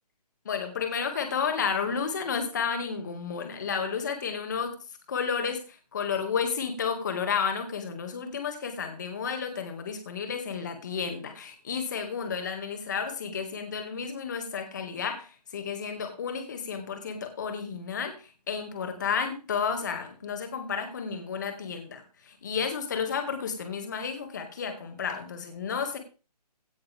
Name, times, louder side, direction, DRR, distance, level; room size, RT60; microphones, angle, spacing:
voice 1, 0.4-4.8 5.1-26.0, left 6 dB, 25° left, 6 dB, 2.5 m, -32 dB
17.0 x 10.0 x 3.7 m, 0.34 s
hypercardioid pair, 175°, 21 cm